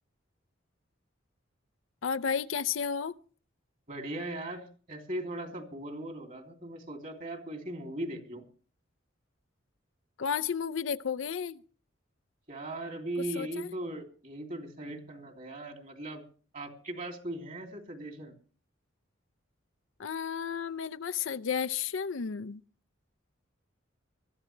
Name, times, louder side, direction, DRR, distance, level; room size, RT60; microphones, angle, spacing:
voice 1, 2.0-3.1 10.2-11.6 13.3-13.7 20.0-22.6, left 7 dB, 80° left, 0.6 m, -32 dB
voice 2, 3.9-8.4 12.5-16.2 16.5-18.3, right 1 dB, 40° right, 3.0 m, -39 dB
21.5 x 14.0 x 3.3 m
head